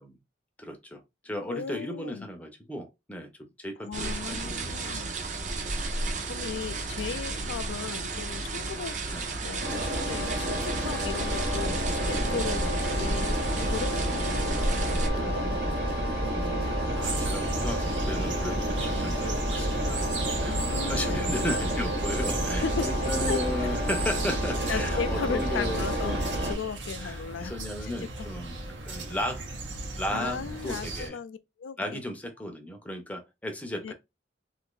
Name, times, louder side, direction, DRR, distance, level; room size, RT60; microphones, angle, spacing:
voice 1, 0.6-5.2 9.1-9.3 16.9-20.6 20.9-26.2 27.0-29.4 29.9-31.2 31.8-33.9, left 1 dB, 10° left, 0.6 m, -35 dB
voice 2, 1.5-2.3 3.8-5.1 6.3-9.0 9.4-15.6 16.3-17.3 20.5-21.5 22.6-22.9 23.3-23.8 24.7-27.5 27.8-28.3 30.1-32.0 33.8-33.9, left 6 dB, 90° left, 0.4 m, -36 dB
sound 1, 3.9-15.1, right 2 dB, 40° right, 0.6 m, -33 dB
Engine, 9.6-26.5, right 1 dB, 60° right, 1.2 m, -29 dB
sound 2, 17.0-31.1, right 3 dB, 80° right, 0.8 m, -37 dB
2.7 x 2.5 x 3.6 m
head